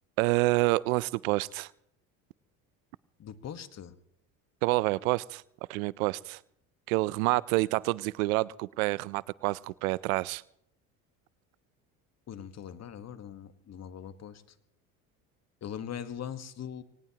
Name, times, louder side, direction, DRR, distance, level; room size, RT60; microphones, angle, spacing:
voice 1, 0.2-1.7 4.6-5.4 5.7-6.4 6.9-10.4, right 21 dB, 85° right, 0.5 m, -28 dB
voice 2, 3.2-4.0 12.3-14.4 15.6-16.8, left 9 dB, 40° left, 1.3 m, -41 dB
23.5 x 18.5 x 2.9 m
supercardioid pair, 80°, 40 cm